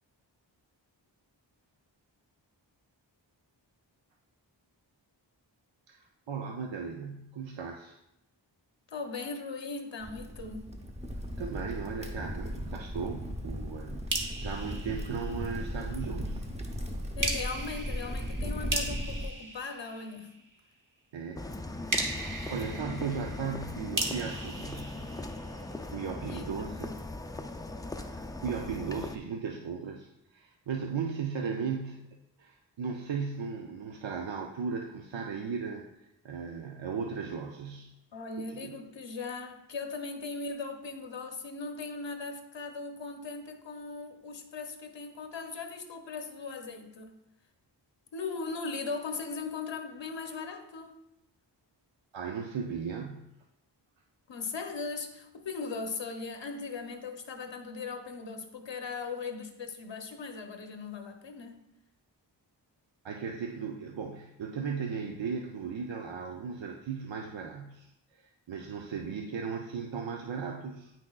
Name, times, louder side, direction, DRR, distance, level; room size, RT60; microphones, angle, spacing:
voice 1, 5.9-8.0 11.4-16.5 21.1-21.4 21.8-25.0 25.8-27.0 28.0-37.9 38.4-38.7 52.1-53.3 63.0-70.9, right 6 dB, 80° right, 2 dB, 0.6 m, -37 dB
voice 2, 8.9-10.7 17.2-20.3 26.3-26.7 38.1-47.2 48.1-51.0 54.3-61.6, left 4 dB, 75° left, 5 dB, 0.8 m, -39 dB
Crackle, 10.0-19.3, equal, 15° right, 0.7 m, -37 dB
sound 1, 14.1-15.8 17.2-20.5 21.9-25.8, right 2 dB, 45° right, 1.1 m, -37 dB
sound 2, 21.4-29.2, left 2 dB, 10° left, 0.4 m, -39 dB
8.7 x 6.0 x 2.3 m, 0.83 s
wide cardioid pair, 65°, 45 cm